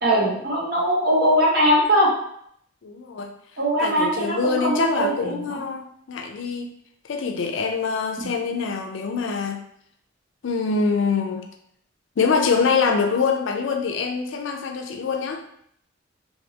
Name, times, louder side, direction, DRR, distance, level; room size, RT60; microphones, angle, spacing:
voice 1, 0.0-2.1 3.6-5.6, equal, 50° right, -4 dB, 1.0 m, -21 dB
voice 2, 2.8-3.3 3.8-6.8 7.1-9.6 10.4-11.4 12.2-15.4, left 5 dB, 70° left, 4 dB, 0.4 m, -24 dB
3.2 x 2.6 x 2.8 m, 0.69 s
head